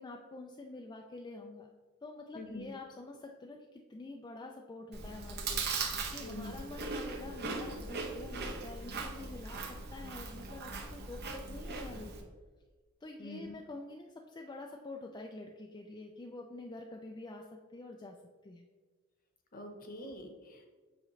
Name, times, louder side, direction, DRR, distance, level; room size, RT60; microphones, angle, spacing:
voice 1, 0.0-1.7 2.0-12.3 13.0-17.5 17.7-18.2 18.4-18.6, left 2 dB, 20° left, 1 dB, 0.4 m, -47 dB
voice 2, 2.3-2.7 6.2-6.6 13.2-13.5 19.5-20.7, left 1 dB, 45° left, 4 dB, 0.9 m, -45 dB
Chewing mastication, 4.9-12.2, right 4 dB, 50° right, 0.8 m, -39 dB
7.3 x 5.0 x 3.2 m, 1.4 s
head